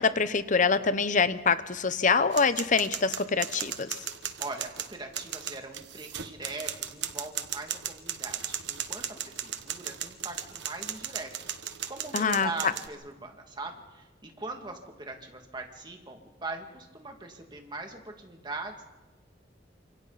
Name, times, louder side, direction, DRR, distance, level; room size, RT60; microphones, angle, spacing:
voice 1, 0.0-4.0 12.1-12.7, left 5 dB, 45° left, 13 dB, 0.9 m, -25 dB
sound 1, 2.3-12.9, right 10 dB, 75° right, 1.3 m, -36 dB
voice 2, 4.4-11.3 11.6-18.8, right 2 dB, 25° right, 3 dB, 2.3 m, -41 dB
29.0 x 26.0 x 4.2 m, 1.1 s
head